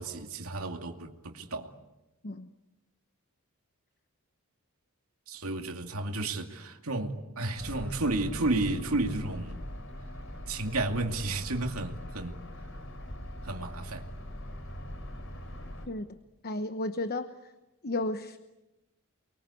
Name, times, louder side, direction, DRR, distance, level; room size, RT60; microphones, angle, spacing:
voice 1, 0.0-1.7 5.3-9.6 10.5-12.3 13.4-14.0, right 2 dB, 75° right, 2.5 m, -32 dB
sound 1, 7.6-15.9, equal, 65° left, 4.0 m, -41 dB
voice 2, 16.4-17.3 17.8-18.4, left 2 dB, 45° left, 1.0 m, -33 dB
29.5 x 23.0 x 8.4 m
head